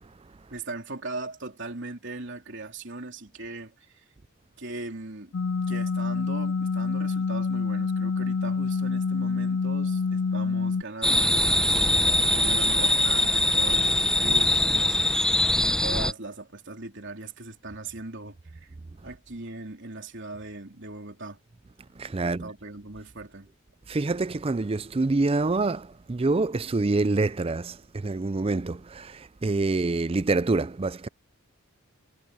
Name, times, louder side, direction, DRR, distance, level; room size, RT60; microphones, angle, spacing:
voice 1, 0.5-4.0 4.6-5.3 5.7-11.8 12.1-18.7 19.0-21.4 22.2-23.5, right 2 dB, 55° right, 3.7 m, -39 dB
sound 1, 5.3-10.8, left 4 dB, 60° left, 0.4 m, -27 dB
sound 2, 11.0-16.1, left 1 dB, 5° left, 0.8 m, -22 dB
voice 2, 22.0-22.5 23.9-31.1, right 3 dB, 25° right, 0.4 m, -26 dB
head